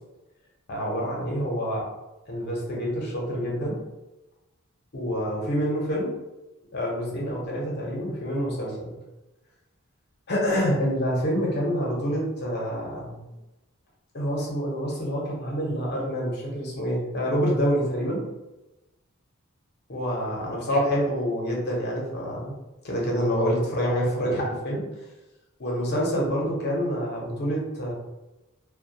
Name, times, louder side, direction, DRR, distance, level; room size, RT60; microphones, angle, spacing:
voice 1, 0.7-1.9 2.3-3.8 4.9-6.1 6.7-8.9 10.3-13.2 14.1-18.2 19.9-22.5 22.8-24.9 25.6-27.9, equal, 50° left, -3 dB, 0.7 m, -27 dB
2.2 x 2.1 x 2.7 m, 1.0 s
head